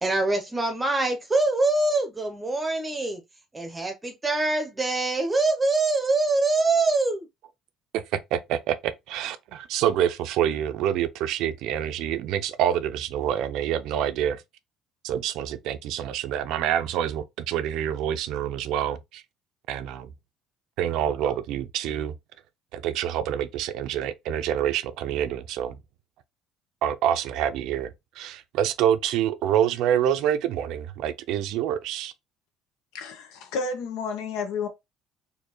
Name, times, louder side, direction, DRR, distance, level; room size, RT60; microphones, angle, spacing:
voice 1, 0.0-3.2 3.5-7.3, right 2 dB, 15° right, 0.8 m, -24 dB
voice 2, 8.3-14.4 15.0-19.2 19.7-20.1 20.8-22.1 22.7-25.8 26.8-27.9 28.2-32.1, right 10 dB, 70° right, 0.5 m, -26 dB
voice 3, 32.9-34.7, left 4 dB, 80° left, 1.1 m, -31 dB
4.4 x 2.8 x 3.0 m
cardioid pair, 140°, 0 cm